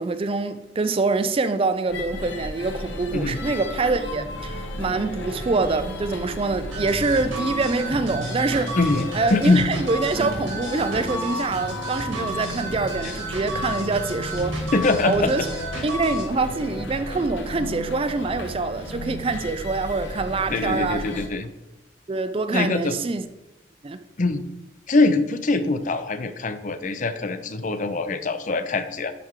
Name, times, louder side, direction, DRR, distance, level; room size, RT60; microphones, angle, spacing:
voice 1, 0.0-8.8 9.1-14.7 15.0-15.5 15.8-21.2 22.1-23.3 23.8-24.0, right 3 dB, 30° right, 0.3 m, -25 dB
sound 1, 1.9-21.3, left 1 dB, 65° left, 1.1 m, -33 dB
sound 2, 6.7-16.3, right 1 dB, 80° right, 2.6 m, -33 dB
voice 2, 8.7-9.7 13.0-13.1 14.7-15.3 20.5-21.5 22.5-23.0 24.2-24.4 24.9-29.1, left 3 dB, 40° left, 0.6 m, -23 dB
12.0 x 4.6 x 3.6 m
head